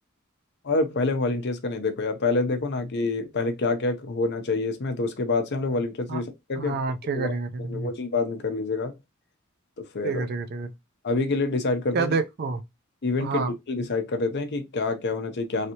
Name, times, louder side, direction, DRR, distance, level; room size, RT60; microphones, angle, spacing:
voice 1, 0.6-6.8 7.1-7.3 7.7-9.0 9.8-10.2 11.0-12.1 13.0-15.7, left 3 dB, 55° left, 0.6 m, -27 dB
voice 2, 6.6-7.9 10.0-10.7 11.9-12.6 13.2-13.5, right 4 dB, 50° right, 0.4 m, -28 dB
3.2 x 2.7 x 2.8 m
head